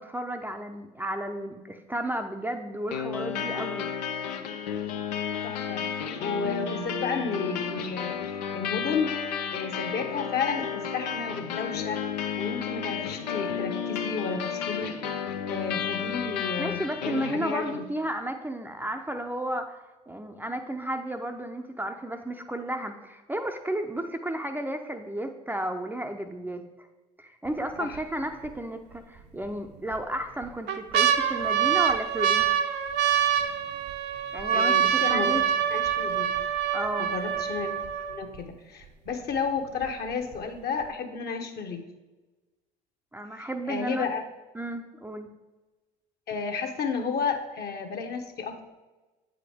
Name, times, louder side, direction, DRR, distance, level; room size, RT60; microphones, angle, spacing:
voice 1, 0.0-3.9 16.6-26.6 27.2-32.6 34.3-34.7 35.1-35.4 36.7-37.1 43.1-44.1 44.5-45.3, right 1 dB, 10° right, 4 dB, 0.6 m, -33 dB
sound 1, 2.9-17.9, left 7 dB, 80° left, 0.6 m, -32 dB
voice 2, 5.4-5.8 6.2-8.2 8.5-9.1 9.5-12.0 12.4-14.9 15.4-17.8 27.8-28.0 34.5-35.4 35.7-36.3 37.0-37.7 38.1-41.8 43.4-44.2 46.3-48.6, left 5 dB, 50° left, 5 dB, 1.1 m, -32 dB
sound 2, 27.5-28.0 28.4-28.5 29.4-30.0 30.4-38.4 39.1-39.2 39.4-39.8 40.3-40.4, right 9 dB, 55° right, 0.7 m, -25 dB
8.3 x 5.0 x 3.5 m, 1.2 s
hypercardioid pair, 65°, 21 cm